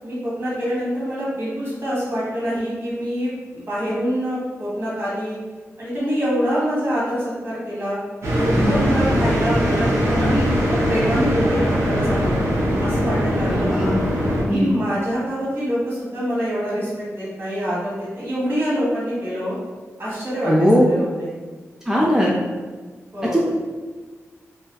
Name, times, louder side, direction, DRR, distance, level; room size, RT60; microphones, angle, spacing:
voice 1, 0.0-5.4 5.8-8.0 8.3-12.4 12.8-13.8 14.5-19.6 20.0-21.3 23.1-23.4, equal, 45° right, -8 dB, 1.2 m, -25 dB
sound 1, 8.2-14.4, equal, 65° right, 0.6 m, -21 dB
voice 2, 8.5-9.0 10.1-10.4 13.4-14.0 14.5-14.7 20.5-20.8 21.9-22.3 23.3-23.5, equal, 10° right, -4 dB, 0.3 m, -19 dB
2.5 x 2.3 x 2.2 m, 1.4 s
cardioid pair, 65°, 5 cm